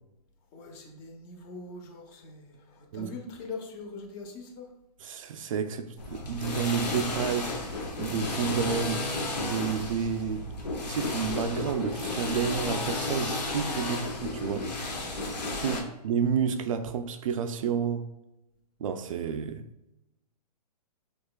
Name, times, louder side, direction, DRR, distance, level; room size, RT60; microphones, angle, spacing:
voice 1, 0.5-4.7 13.8-14.1, left 3 dB, 30° left, 0.7 m, -43 dB
voice 2, 5.0-7.5 8.0-9.1 9.4-10.5 10.9-14.7 15.6-18.1 18.8-19.6, right 7 dB, 55° right, 0.4 m, -30 dB
sound 1, 6.0-15.8, left 2 dB, 90° left, 0.9 m, -33 dB
6.1 x 2.3 x 2.3 m
hypercardioid pair, 135°, 21 cm